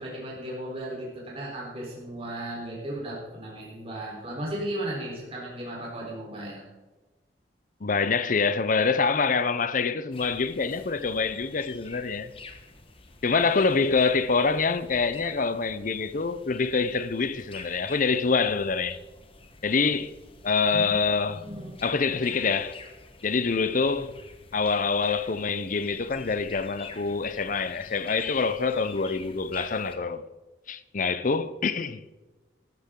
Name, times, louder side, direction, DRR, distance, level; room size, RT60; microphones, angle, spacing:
voice 1, 0.0-6.6 20.7-21.0 21.2-21.7, right 1 dB, 35° right, 4.0 m, -35 dB
voice 2, 7.8-12.3 13.2-19.0 19.6-20.1 20.4-21.4 21.8-22.8 23.2-24.1 24.5-30.2 30.7-32.0, left 4 dB, 45° left, 0.7 m, -25 dB
sound 1, 10.1-30.0, left 3 dB, 30° left, 1.2 m, -48 dB
13.5 x 13.5 x 3.8 m
head